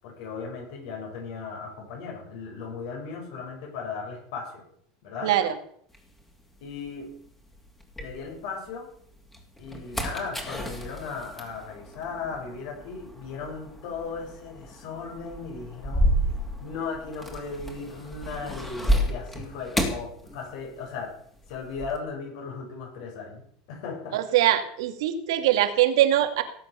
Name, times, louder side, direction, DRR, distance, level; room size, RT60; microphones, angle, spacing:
voice 1, 0.0-4.6 5.0-5.3 6.6-7.1 8.0-8.9 9.6-16.1 16.6-21.2 21.5-23.4 23.7-24.2, left 5 dB, 65° left, 1 dB, 7.1 m, -36 dB
voice 2, 5.2-5.6 24.1-26.4, right 12 dB, 80° right, 8 dB, 2.2 m, -22 dB
sound 1, 5.9-8.7 9.2-20.9 21.2-22.0, equal, 10° left, 2.8 m, -31 dB
18.0 x 8.4 x 6.9 m, 0.64 s
supercardioid pair, 150°, 3 cm